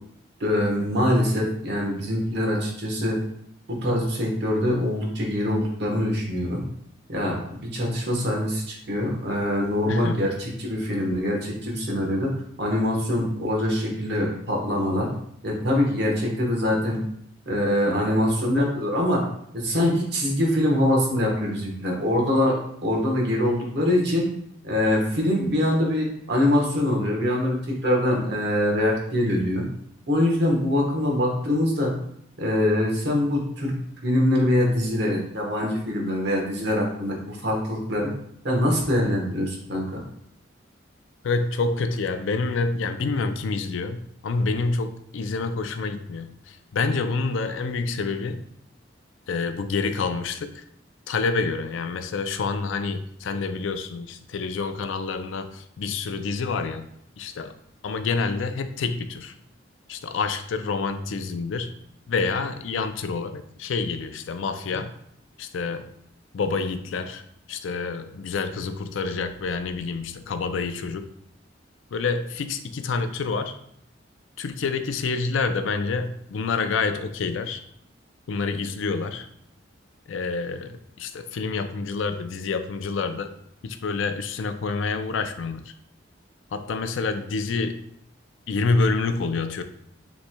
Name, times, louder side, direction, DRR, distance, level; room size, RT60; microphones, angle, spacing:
voice 1, 0.4-3.2 3.7-6.6 7.1-12.3 12.6-15.1 15.4-17.0 17.5-19.2 19.5-22.5 22.8-24.3 24.6-29.6 30.1-31.9 32.4-33.7 34.0-38.1 38.4-40.0, left 1 dB, 60° right, -1 dB, 1.2 m, -24 dB
voice 2, 41.2-48.4 49.3-50.6 51.1-56.9 57.2-57.5 57.8-59.3 59.9-61.7 62.1-64.9 65.4-65.9 66.3-67.2 67.5-71.1 71.9-73.6 74.4-77.6 78.3-79.3 80.1-83.3 83.6-85.7 86.5-87.8 88.5-89.6, left 4 dB, 80° left, 8 dB, 0.4 m, -27 dB
6.9 x 3.1 x 2.2 m, 0.71 s
head